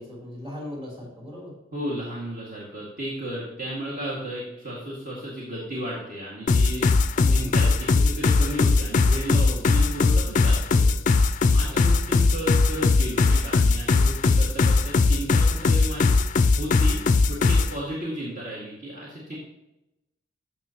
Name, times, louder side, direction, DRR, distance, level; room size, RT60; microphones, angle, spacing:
voice 1, 0.0-1.5 7.1-7.6 9.3-9.7 11.6-11.9, left 1 dB, 25° right, -4 dB, 3.3 m, -38 dB
voice 2, 1.7-6.9 7.3-11.1 11.5-16.2 16.6-17.0 17.3-19.4, equal, 45° right, -6 dB, 2.1 m, -34 dB
sound 1, 6.5-17.7, left 3 dB, 40° left, 0.4 m, -20 dB
13.0 x 6.5 x 2.9 m, 0.91 s
head